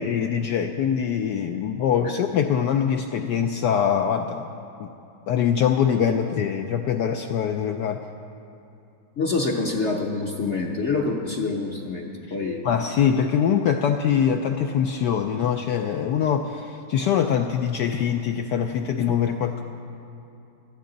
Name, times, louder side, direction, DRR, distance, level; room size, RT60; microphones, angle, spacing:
voice 1, 0.0-4.5 4.8-4.9 5.3-8.0 12.6-19.6, left 8 dB, 75° left, 5 dB, 1.0 m, -23 dB
voice 2, 9.2-12.6, left 3 dB, 50° left, 0 dB, 0.8 m, -26 dB
19.0 x 13.0 x 3.9 m, 2.8 s
omnidirectional pair, 2.3 m